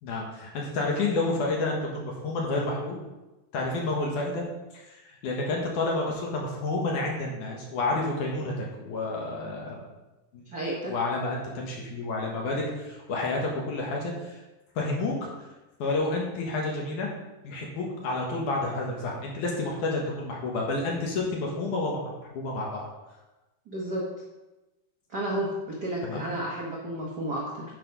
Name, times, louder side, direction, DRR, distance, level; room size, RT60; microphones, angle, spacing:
voice 1, 0.0-3.0 3.5-4.5 4.7-9.8 10.3-10.4 10.8-14.4 14.8-15.3 15.8-17.1 17.4-22.0 22.3-22.9 26.0-26.2, left 2 dB, 60° left, -1 dB, 2.7 m, -30 dB
voice 2, 10.5-10.9 23.7-24.0 25.1-27.6, right 1 dB, 70° right, -4 dB, 0.9 m, -32 dB
9.0 x 5.9 x 5.3 m, 1.1 s
omnidirectional pair, 4.3 m